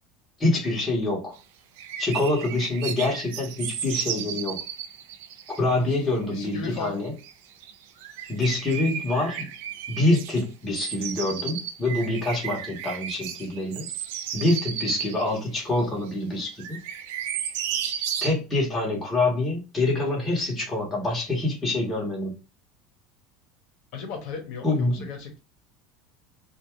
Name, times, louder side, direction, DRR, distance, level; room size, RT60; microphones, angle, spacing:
voice 1, 0.4-1.4 2.0-4.6 5.5-7.1 8.3-9.5 9.9-13.8 14.3-16.8 18.2-22.3 24.6-25.1, left 2 dB, 15° left, 1.0 m, -26 dB
sound 1, 1.8-5.6 6.0-6.1 6.4-7.3 7.6-7.7 8.0-10.4 10.8-15.3 16.1-16.2 16.6-18.3, right 9 dB, 85° right, 0.4 m, -34 dB
voice 2, 6.3-7.0 23.9-25.4, left 4 dB, 60° left, 0.9 m, -36 dB
2.6 x 2.2 x 3.1 m
cardioid pair, 150°, 0 cm